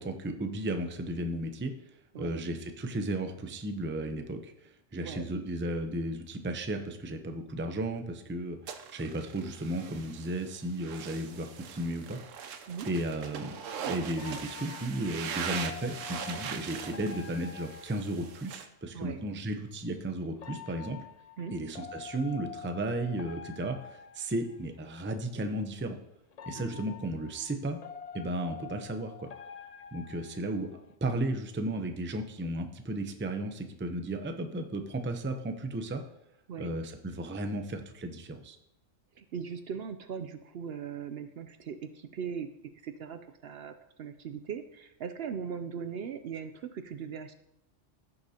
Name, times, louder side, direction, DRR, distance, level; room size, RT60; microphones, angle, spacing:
voice 1, 0.0-1.7 2.2-12.2 12.9-13.5 13.9-21.0 21.5-26.0 26.5-27.8 28.1-29.3 29.9-30.7 31.0-36.0 36.6-38.6, right 1 dB, 15° right, 6 dB, 0.5 m, -34 dB
sound 1, 8.7-18.7, right 7 dB, 85° right, 1.1 m, -41 dB
sound 2, 14.2-18.8 20.4-25.0 26.3-30.9, left 7 dB, 55° left, 0.4 m, -47 dB
voice 2, 39.2-42.5 42.8-47.3, right 7 dB, 60° right, 9 dB, 0.7 m, -39 dB
15.5 x 6.7 x 2.8 m, 0.82 s
omnidirectional pair, 1.3 m